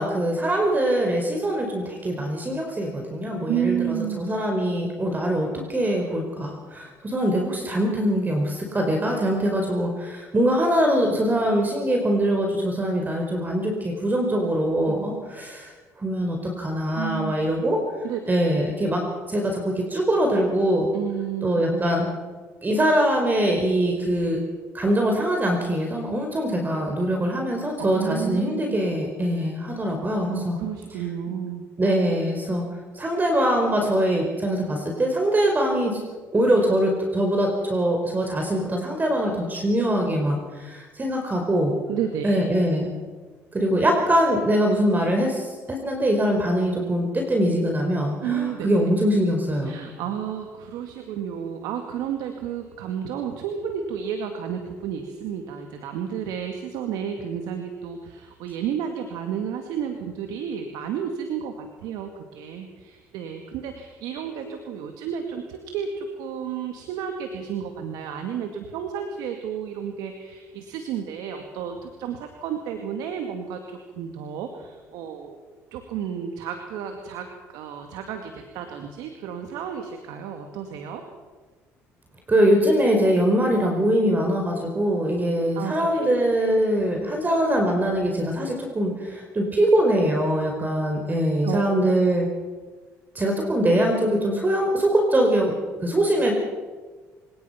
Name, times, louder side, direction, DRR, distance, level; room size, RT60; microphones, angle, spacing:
voice 1, 0.0-15.7 16.0-17.8 18.3-20.9 21.4-22.1 22.6-24.4 24.7-30.6 31.8-32.6 32.9-36.0 36.3-41.7 42.2-42.9 43.5-49.8 82.3-92.3 93.1-95.5 95.8-96.3, right 1 dB, 25° right, 2 dB, 4.9 m, -23 dB
voice 2, 3.5-4.2 14.9-15.1 16.9-17.4 18.0-18.3 20.9-21.8 27.9-28.5 30.3-31.7 41.9-42.4 48.2-48.7 49.6-75.4 75.7-81.0 85.6-86.2 91.4-91.9, right 8 dB, 75° right, 5 dB, 2.1 m, -31 dB
27.0 x 18.0 x 5.9 m, 1.3 s
supercardioid pair, 70°, 7 cm